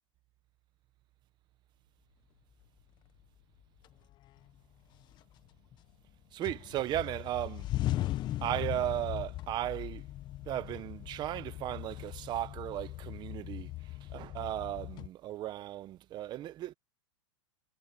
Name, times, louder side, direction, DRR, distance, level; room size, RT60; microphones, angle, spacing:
sound 1, 3.2-3.3 3.8-4.6 4.9-6.1 6.4-15.1, left 15 dB, 25° left, 0.9 m, -39 dB
voice 1, 6.3-7.7 8.4-10.1 10.4-16.7, right 13 dB, 25° right, 1.0 m, -36 dB
supercardioid pair, 150°, 17 cm